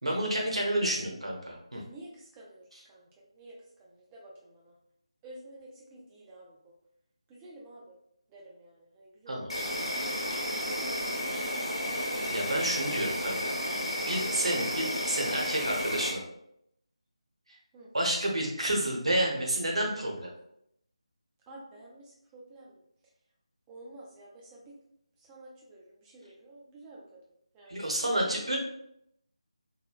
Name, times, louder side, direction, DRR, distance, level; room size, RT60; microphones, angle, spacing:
voice 1, 0.0-1.8 9.3-9.5 12.3-13.8 14.1-16.2 17.9-20.3 27.7-28.6, right 1 dB, 65° right, -1 dB, 0.8 m, -30 dB
voice 2, 1.8-4.7 5.2-6.7 7.3-8.0 8.3-12.1 17.7-17.9 21.5-22.8 23.7-24.8 25.2-27.2 27.5-28.4, right 1 dB, 10° right, -4 dB, 0.3 m, -51 dB
Insect, 9.5-16.1, equal, 65° left, 0.9 m, -32 dB
3.0 x 2.2 x 2.3 m, 0.75 s
figure-of-eight pair, 160°, 3 cm